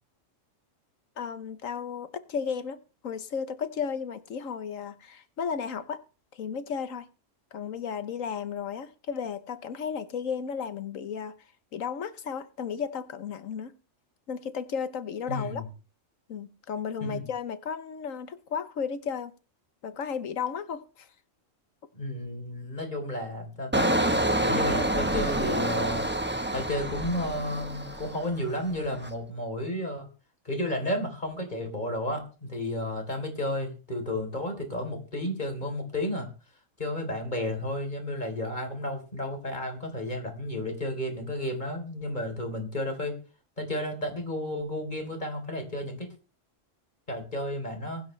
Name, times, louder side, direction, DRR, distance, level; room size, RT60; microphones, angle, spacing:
voice 1, 1.2-2.8 3.0-6.0 6.3-7.1 7.5-11.4 11.7-13.7 14.3-15.6 16.3-19.3 19.8-21.1, left 6 dB, 90° left, 1.5 m, -34 dB
voice 2, 15.3-15.6 17.0-17.2 21.9-24.0 24.4-26.0 26.5-30.1 30.4-36.3 36.8-43.2 43.6-46.1 47.1-48.0, left 1 dB, 35° left, 3.9 m, -32 dB
Engine, 23.7-28.4 28.8-29.1, right 1 dB, 10° right, 1.2 m, -27 dB
22.5 x 10.5 x 3.3 m
omnidirectional pair, 1.3 m